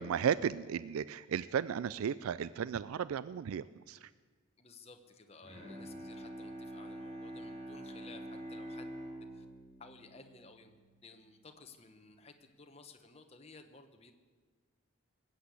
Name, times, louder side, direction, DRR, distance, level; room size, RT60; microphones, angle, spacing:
voice 1, 0.0-4.1, right 8 dB, 90° right, 17 dB, 0.4 m, -34 dB
voice 2, 4.6-8.9 9.3-9.5 9.8-10.8 11.0-14.1, left 3 dB, 30° left, 6 dB, 1.1 m, -56 dB
Bowed string instrument, 5.4-11.0, right 1 dB, 35° right, 6.3 m, -46 dB
20.0 x 8.2 x 8.4 m, 1.5 s
head